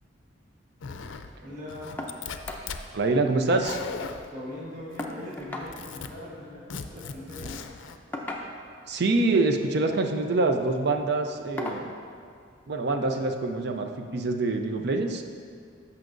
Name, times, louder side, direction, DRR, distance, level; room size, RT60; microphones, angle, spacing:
Zipper (clothing), 0.8-1.3 1.7-2.8 3.4-4.3 4.9-5.3 5.6-6.1 6.7-8.0, left 5 dB, 85° left, 0.4 m, -38 dB
voice 1, 1.4-1.9 4.3-7.6, left 1 dB, 45° right, -6 dB, 1.3 m, -40 dB
sound 1, 2.0-2.2 2.5-2.7 3.1-3.2 3.4-4.1 5.0-5.7 7.0-7.2 8.1-8.8 9.8-10.1 10.6-10.8 11.6-11.9 13.2-13.3 13.8-13.9, left 2 dB, 10° left, 0.6 m, -37 dB
voice 2, 2.9-3.8 8.9-11.9 12.7-15.2, right 3 dB, 60° right, 5 dB, 0.5 m, -25 dB
12.5 x 5.7 x 2.6 m, 2.3 s
head